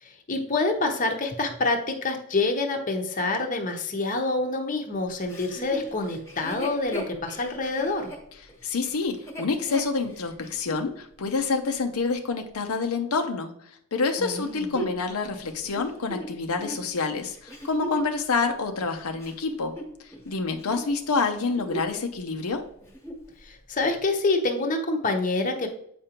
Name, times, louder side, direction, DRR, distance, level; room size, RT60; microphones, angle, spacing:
voice 1, 0.0-8.1 14.2-14.7 23.4-25.7, left 3 dB, 35° left, 3 dB, 0.8 m, -27 dB
Chuckle chortle, 5.3-10.9 11.4-11.5 14.2-18.2 18.8-20.3 20.5-20.9 21.3-22.0 22.3-22.4 22.8-23.3 23.9-24.0, right 1 dB, 15° left, 1.2 m, -38 dB
voice 2, 8.6-13.5 13.9-19.7 20.0-22.6, left 4 dB, 80° left, 5 dB, 0.7 m, -27 dB
7.7 x 5.0 x 2.9 m, 0.69 s
head